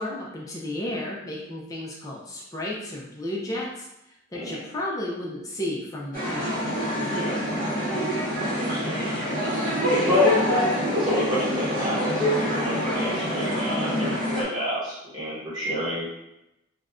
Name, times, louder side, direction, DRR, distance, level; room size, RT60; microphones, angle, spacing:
voice 1, 0.0-6.8, left 1 dB, 15° left, -4 dB, 0.3 m, -33 dB
voice 2, 4.3-4.6 7.1-7.4 8.5-9.0 10.0-10.4 10.7-16.1, left 1 dB, 20° right, -10 dB, 1.2 m, -28 dB
sound 1, 6.1-14.4, equal, 40° right, 0.8 m, -26 dB
2.4 x 2.0 x 3.5 m, 0.88 s
head